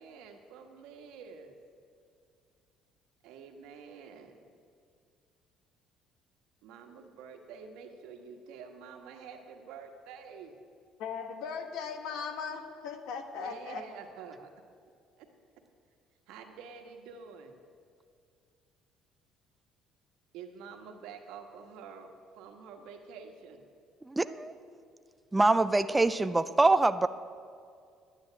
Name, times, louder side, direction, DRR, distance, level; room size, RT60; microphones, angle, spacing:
voice 1, 0.0-1.6 3.2-4.5 6.6-10.5 13.3-14.5 15.2-15.3 16.3-17.6 20.3-22.1 22.4-23.7, right 6 dB, 85° right, 4 dB, 1.5 m, -48 dB
voice 2, 11.0-13.8, left 6 dB, 75° left, 6 dB, 1.4 m, -38 dB
voice 3, 24.0-24.5 25.3-27.1, right 2 dB, 10° right, 12 dB, 0.3 m, -24 dB
10.5 x 9.7 x 8.8 m, 2.3 s
cardioid pair, 160°, 0 cm